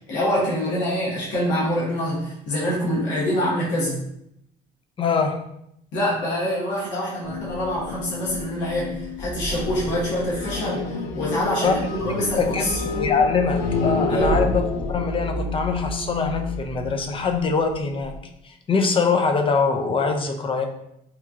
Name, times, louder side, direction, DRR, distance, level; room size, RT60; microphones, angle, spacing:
voice 1, 0.1-4.0 5.9-12.8 14.1-14.4, equal, 75° left, -6 dB, 1.0 m, -25 dB
voice 2, 5.0-5.4 11.6-11.9 12.2-18.1 18.4-20.6, left 4 dB, 30° left, 5 dB, 0.4 m, -23 dB
sound 1, 7.2-18.2, left 3 dB, 90° left, 0.4 m, -29 dB
2.9 x 2.2 x 2.4 m, 0.78 s
supercardioid pair, 80°, 19 cm